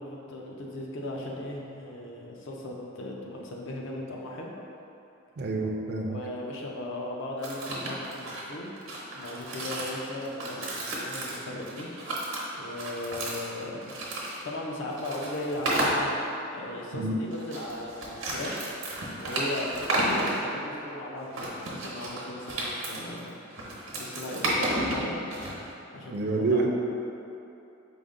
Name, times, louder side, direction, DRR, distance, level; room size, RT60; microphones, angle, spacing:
voice 1, 0.0-4.5 6.0-8.7 9.1-11.9 12.5-14.0 14.4-16.1 16.5-18.7 19.2-23.4 23.9-25.2 25.9-26.7, left 1 dB, 65° left, -2 dB, 0.5 m, -37 dB
voice 2, 5.4-6.2 16.9-17.2 26.1-26.7, right 3 dB, 50° right, 1 dB, 0.4 m, -27 dB
sound 1, 7.4-14.4 14.9-16.0 17.3-20.4 21.3-25.5, right 1 dB, 90° right, 0.9 m, -32 dB
4.9 x 2.1 x 3.6 m, 2.8 s
head